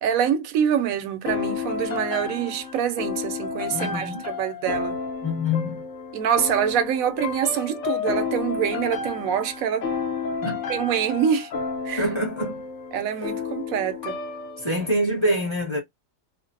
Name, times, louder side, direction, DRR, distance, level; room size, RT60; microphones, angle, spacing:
voice 1, 0.0-5.0 6.1-9.9 10.7-11.5 11.8-12.0 12.9-14.2, right 8 dB, 85° right, 1.0 m, -25 dB
sound 1, 1.3-14.9, left 5 dB, 65° left, 1.0 m, -31 dB
voice 2, 3.7-4.2 5.2-5.9 10.4-10.6 12.0-12.6 14.6-15.8, left 1 dB, 25° left, 0.9 m, -25 dB
2.5 x 2.0 x 2.5 m
omnidirectional pair, 1.4 m